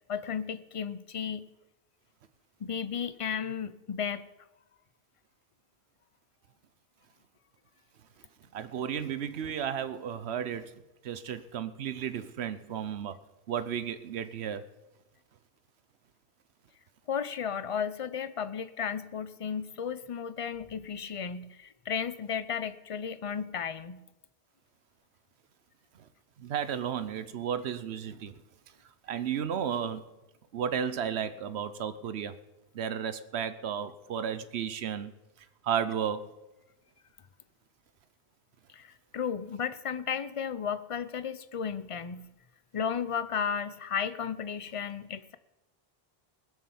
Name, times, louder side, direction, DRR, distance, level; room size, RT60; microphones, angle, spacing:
voice 1, 0.1-1.5 2.6-4.3 17.1-24.0 38.7-42.3 42.7-45.4, left 7 dB, 35° left, 14 dB, 0.7 m, -34 dB
voice 2, 8.5-10.7 11.0-13.2 13.5-14.6 26.4-28.4 29.0-30.0 30.5-32.3 32.7-35.1 35.6-36.2, right 8 dB, 90° right, 13 dB, 1.0 m, -33 dB
20.5 x 7.5 x 7.1 m, 1.0 s
omnidirectional pair, 1.1 m